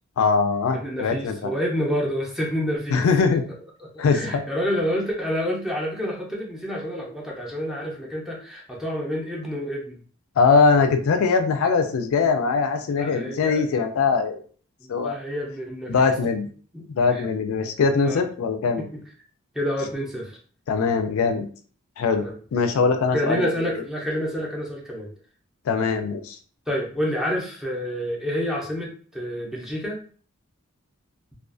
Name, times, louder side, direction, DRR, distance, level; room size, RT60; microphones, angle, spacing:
voice 1, 0.2-1.5 2.9-3.4 4.0-4.4 10.4-14.4 14.9-15.2 15.9-16.5 17.0-18.8 20.7-21.5 22.0-22.3 22.5-23.5 25.7-26.4, left 4 dB, 65° left, 7 dB, 0.3 m, -21 dB
voice 2, 0.8-3.1 3.8-10.0 12.9-13.6 14.8-16.1 16.7-17.2 18.0-18.2 18.8-19.0 19.5-20.4 22.2-22.4 23.1-25.1 26.7-30.1, equal, ahead, -2 dB, 0.5 m, -28 dB
2.3 x 2.3 x 2.4 m, 0.43 s
head